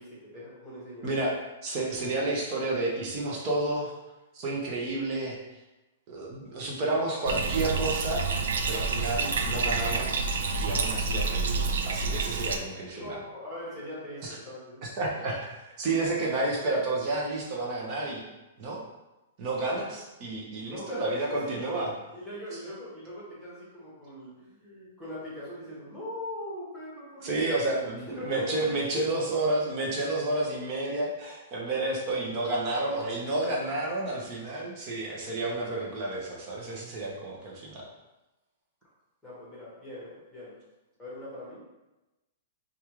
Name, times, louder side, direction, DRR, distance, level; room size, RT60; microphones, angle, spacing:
voice 1, 0.0-1.3 12.8-14.8 20.6-29.0 39.2-40.6 41.0-41.6, left 1 dB, 5° left, -9 dB, 1.3 m, -41 dB
voice 2, 1.6-4.0 4.3-5.4 6.1-8.3 8.6-10.3 10.6-13.2 14.2-14.4 14.8-15.5 15.8-18.2 18.6-18.8 19.4-21.9 27.2-37.9, right 2 dB, 25° right, -2 dB, 0.8 m, -30 dB
Bathtub (filling or washing), 7.3-12.6, right 4 dB, 85° right, 0.5 m, -28 dB
5.1 x 2.4 x 3.1 m, 1.0 s
hypercardioid pair, 175°, 0 cm